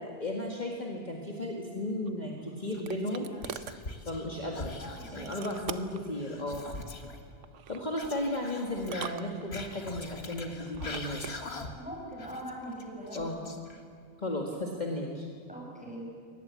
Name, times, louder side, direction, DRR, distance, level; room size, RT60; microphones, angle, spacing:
voice 1, 0.0-3.3 4.1-4.7 5.1-6.7 7.7-11.4 13.1-13.4 14.2-15.3, left 1 dB, 35° left, 0 dB, 2.0 m, -34 dB
sound 1, 2.0-3.8 5.2-6.1 7.4-7.9 8.8-9.8 10.7-11.4, right 8 dB, 65° right, 1.1 m, -42 dB
Whispering, 2.7-4.3 4.5-7.2 7.9-11.9 12.2-14.0, left 3 dB, 50° left, 1.9 m, -43 dB
voice 2, 4.8-5.4 7.9-8.1 11.8-13.6 15.5-16.1, equal, 5° right, -3 dB, 6.5 m, -42 dB
23.0 x 19.0 x 8.3 m, 2.3 s
omnidirectional pair, 1.4 m